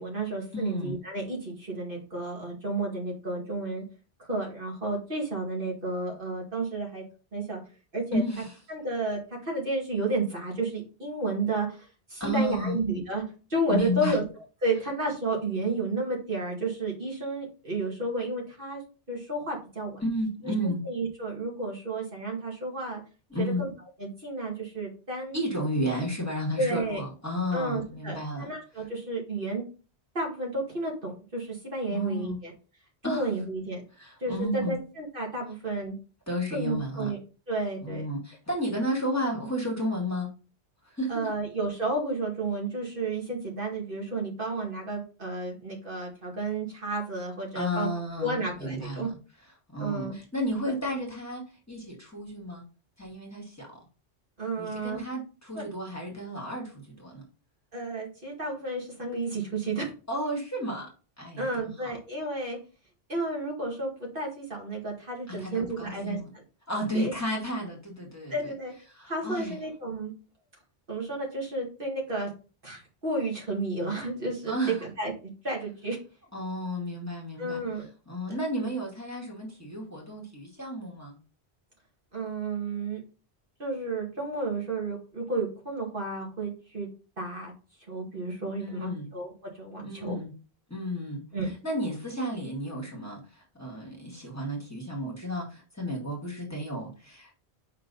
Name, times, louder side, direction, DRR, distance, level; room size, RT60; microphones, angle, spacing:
voice 1, 0.0-3.8 4.2-7.0 7.3-7.6 7.9-8.2 8.7-13.2 13.5-14.2 14.6-18.8 19.1-20.0 20.4-23.0 23.4-23.7 24.0-25.4 26.6-27.0 27.5-29.6 30.1-32.5 33.0-33.8 34.2-36.0 36.5-37.2 37.5-38.1 41.1-47.9 48.2-49.1 49.8-50.2 54.4-55.0 55.5-55.6 57.7-59.9 61.4-62.6 63.1-66.4 66.9-67.1 68.3-68.7 69.0-70.1 70.9-72.3 72.6-76.0 77.4-77.9 82.1-83.0 83.6-86.9 87.2-87.5 87.9-90.2 91.3-91.5, right 2 dB, 60° right, -2 dB, 2.4 m, -32 dB
voice 2, 0.5-1.0 8.1-8.5 12.2-12.8 13.7-14.2 20.0-20.8 23.3-23.6 25.3-28.5 31.9-32.4 33.0-33.3 34.0-34.8 36.3-37.2 37.8-40.3 40.8-41.3 47.5-49.1 49.7-52.6 53.0-53.7 54.6-57.2 60.1-60.9 61.2-61.7 65.3-66.3 66.7-68.4 68.9-69.6 74.5-74.8 76.3-77.6 78.1-81.2 88.6-89.1 89.8-90.3 90.7-97.3, equal, 15° left, -3 dB, 2.2 m, -32 dB
5.5 x 3.8 x 5.4 m, 0.35 s
omnidirectional pair, 1.1 m